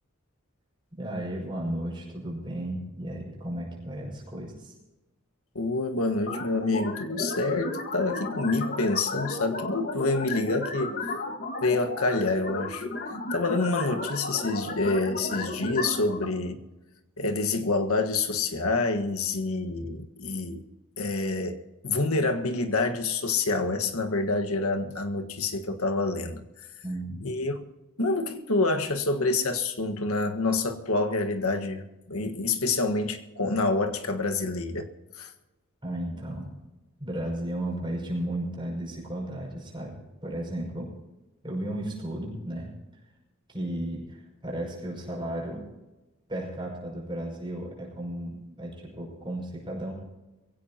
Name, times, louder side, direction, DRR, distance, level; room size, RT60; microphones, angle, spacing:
voice 1, 1.0-4.7 19.8-19.9 26.8-27.3 35.8-36.5 37.0-40.9 41.4-42.7 43.5-45.7 46.3-49.9, right 1 dB, 20° right, 5.9 m, -34 dB
voice 2, 5.5-11.0 11.6-12.9 13.3-16.6 17.2-20.6 21.0-21.6 21.8-26.4 27.2-27.6 28.0-34.9 35.2-35.3, left 3 dB, 85° left, 1.5 m, -27 dB
sound 1, 6.3-16.2, left 2 dB, 45° left, 1.6 m, -34 dB
22.5 x 16.5 x 2.9 m
head